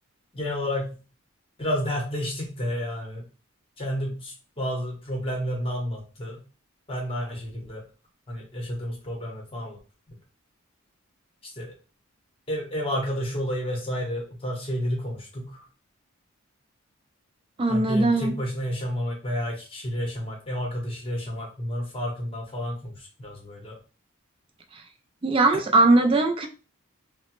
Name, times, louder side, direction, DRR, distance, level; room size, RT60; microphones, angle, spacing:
voice 1, 0.3-1.0 1.6-3.2 3.8-6.4 6.9-7.8 8.3-9.8 10.1-10.2 11.4-11.7 12.5-15.6 17.7-23.8, equal, 25° left, -1 dB, 0.8 m, -31 dB
voice 2, 17.6-18.3 25.2-26.5, right 2 dB, 25° right, 5 dB, 0.3 m, -20 dB
2.9 x 2.0 x 2.9 m, 0.34 s
head